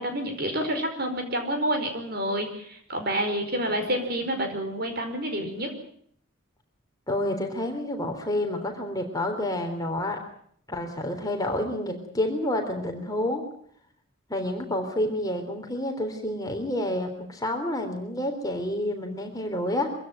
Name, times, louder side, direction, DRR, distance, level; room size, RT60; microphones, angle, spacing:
voice 1, 0.0-5.7, right 1 dB, 45° right, 6 dB, 5.0 m, -28 dB
voice 2, 7.1-10.2 10.7-13.4 14.3-19.9, left 1 dB, 15° left, 4 dB, 3.6 m, -29 dB
24.5 x 16.0 x 9.2 m, 0.63 s
head